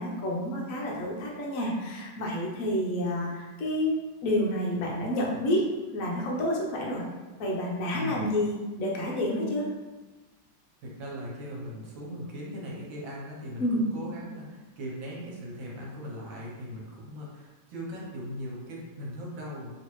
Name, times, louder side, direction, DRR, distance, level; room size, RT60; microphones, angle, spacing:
voice 1, 0.0-3.9 4.2-5.6 5.9-7.0 7.4-9.7 13.6-13.9, left 1 dB, 60° left, -3 dB, 0.9 m, -29 dB
voice 2, 7.9-8.3 10.8-19.7, equal, 75° right, -3 dB, 1.5 m, -39 dB
3.2 x 2.9 x 3.0 m, 1.2 s
omnidirectional pair, 2.1 m